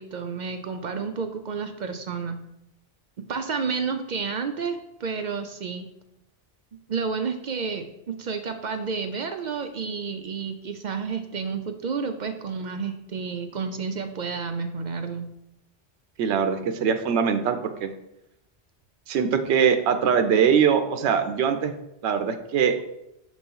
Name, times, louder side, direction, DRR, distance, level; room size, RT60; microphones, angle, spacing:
voice 1, 0.0-2.4 3.3-5.9 6.9-15.3, right 5 dB, 55° right, 6 dB, 0.5 m, -30 dB
voice 2, 16.2-17.9 19.1-21.7 22.0-22.8, right 7 dB, 80° right, 8 dB, 0.9 m, -22 dB
6.7 x 3.0 x 5.3 m, 0.85 s
omnidirectional pair, 1.1 m